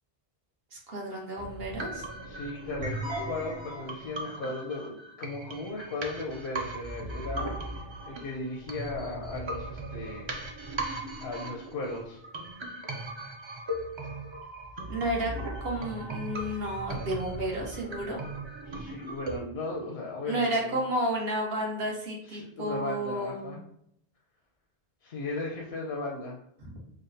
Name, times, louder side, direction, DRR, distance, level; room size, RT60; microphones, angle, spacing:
voice 1, 0.7-2.1 14.9-15.3 15.6-18.2 20.3-23.5 26.6-26.7, right 1 dB, 70° right, -1 dB, 1.2 m, -31 dB
sound 1, 1.4-19.4, right 1 dB, 40° right, 0.4 m, -38 dB
voice 2, 2.2-7.5 8.1-10.4 11.2-12.2 18.7-20.7 22.3-23.6 25.0-26.4, left 2 dB, 85° left, -2 dB, 0.9 m, -36 dB
4.9 x 2.1 x 2.6 m, 0.70 s
omnidirectional pair, 1.0 m